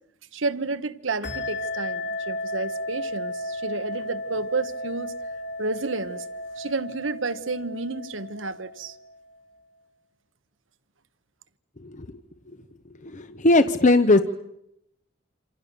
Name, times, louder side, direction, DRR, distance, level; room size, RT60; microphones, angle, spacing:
voice 1, 0.3-5.2 5.6-6.2 6.6-8.9, right 3 dB, 85° right, 13 dB, 1.4 m, -31 dB
sound 1, 1.2-9.4, left 1 dB, 65° left, 3.5 m, -34 dB
voice 2, 13.0-14.2, left 2 dB, 40° left, 10 dB, 1.0 m, -19 dB
27.5 x 27.5 x 7.0 m, 0.80 s
head